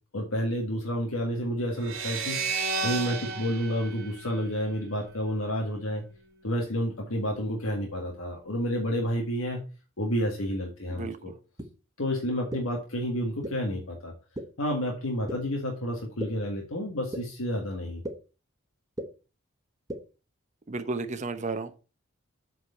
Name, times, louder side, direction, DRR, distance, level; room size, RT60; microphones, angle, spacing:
voice 1, 0.1-2.4 2.8-6.0 6.4-9.6 10.0-11.3 12.0-14.1 14.6-18.0, equal, 85° left, 1.8 m, -30 dB
sound 1, 1.8-5.1, right 4 dB, 65° right, 1.9 m, -33 dB
Bloop Jar, 11.6-11.7 12.5-12.6 13.4-13.5 14.4-14.5 15.3-15.4 16.2-16.3 17.1-17.2 18.0-18.1 19.0-19.1 19.9-20.0, right 1 dB, 20° right, 1.1 m, -33 dB
voice 2, 20.7-21.8, right 3 dB, 35° right, 0.8 m, -33 dB
8.1 x 4.8 x 5.6 m
head